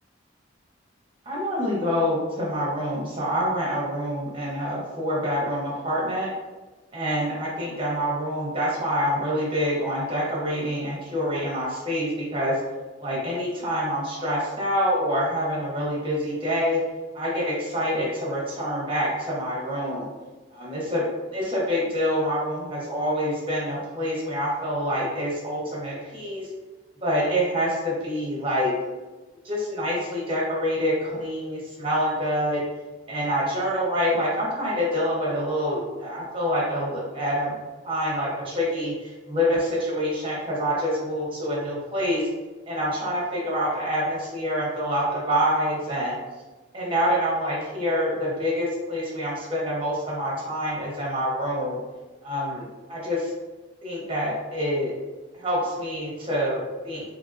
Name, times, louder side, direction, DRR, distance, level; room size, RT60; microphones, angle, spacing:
voice 1, 1.3-6.3 6.9-12.6 13.0-16.8 17.1-20.1 20.5-26.5 27.0-28.7 29.4-32.6 33.1-37.6 37.8-42.2 42.7-46.2 46.7-51.8 52.2-53.3 53.8-54.9 55.4-57.0, equal, 25° right, -6 dB, 0.9 m, -26 dB
2.8 x 2.6 x 2.5 m, 1.2 s
head